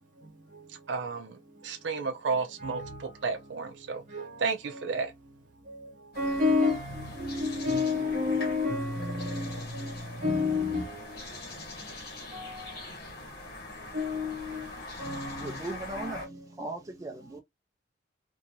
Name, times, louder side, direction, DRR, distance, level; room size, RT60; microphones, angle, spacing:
voice 1, 0.9-1.4 1.6-4.0 4.4-5.1, right 4 dB, 80° right, 0.5 m, -32 dB
voice 2, 2.6-3.0 4.1-4.4 4.7-4.8 5.7-5.8 6.2-11.2 12.3-12.7 13.9-14.7 15.0-15.5 16.0-16.1, left 3 dB, 45° right, 1.1 m, -30 dB
sound 1, 6.1-16.3, left 2 dB, 55° left, 1.4 m, -43 dB
voice 3, 15.2-16.3 16.6-17.4, right 2 dB, 20° right, 0.4 m, -38 dB
2.6 x 2.6 x 2.7 m
head